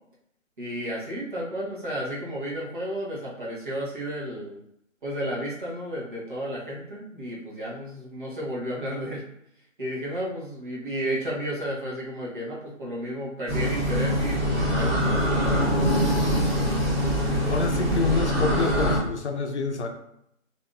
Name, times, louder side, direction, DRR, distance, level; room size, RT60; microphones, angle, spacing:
voice 1, 0.6-4.6 5.0-9.3 9.8-16.4 17.4-17.5, equal, 40° right, -5 dB, 0.9 m, -33 dB
sound 1, 13.5-19.0, equal, 10° right, 0.8 m, -23 dB
voice 2, 17.5-19.9, left 3 dB, 60° left, 4 dB, 0.6 m, -27 dB
3.3 x 2.5 x 2.3 m, 0.76 s
hypercardioid pair, 170°, 40 cm